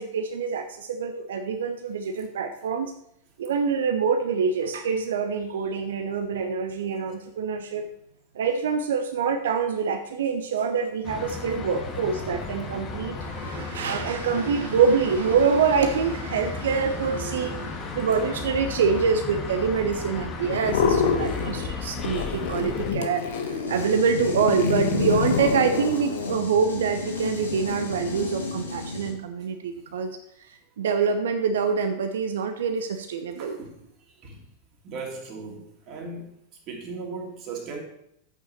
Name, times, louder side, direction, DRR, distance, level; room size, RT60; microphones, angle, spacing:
voice 1, 0.0-2.9 3.4-7.9 8.3-30.2 30.8-33.6, right 6 dB, 60° right, 7 dB, 0.7 m, -25 dB
sound 1, 11.0-22.9, left 4 dB, 25° left, 1.8 m, -35 dB
sound 2, 20.5-21.7 22.0-26.3, left 6 dB, 55° left, 1.3 m, -27 dB
sound 3, 23.7-29.1, left 3 dB, 75° left, 2.0 m, -34 dB
voice 2, 33.4-33.7 34.2-34.4 34.8-36.3 36.7-37.8, right 4 dB, 40° right, 1 dB, 2.5 m, -37 dB
11.0 x 8.4 x 3.1 m, 0.74 s
figure-of-eight pair, 90°, 0 cm